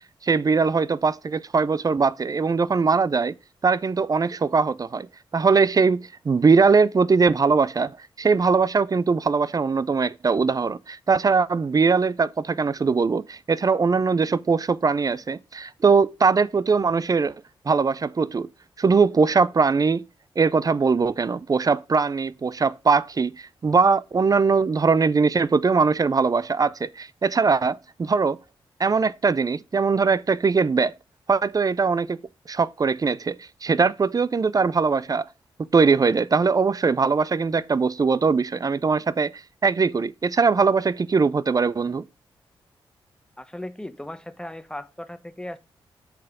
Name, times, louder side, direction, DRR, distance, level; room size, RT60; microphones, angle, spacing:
voice 1, 0.2-3.3 3.6-5.1 5.3-7.9 8.2-17.3 17.7-18.5 18.8-20.0 20.4-28.4 28.8-30.9 31.3-32.2 32.5-35.3 35.7-42.0, right 4 dB, 40° right, 0.5 m, -21 dB
voice 2, 43.4-45.6, left 1 dB, 10° left, 1.0 m, -37 dB
7.4 x 5.9 x 3.7 m
cardioid pair, 55°, 10 cm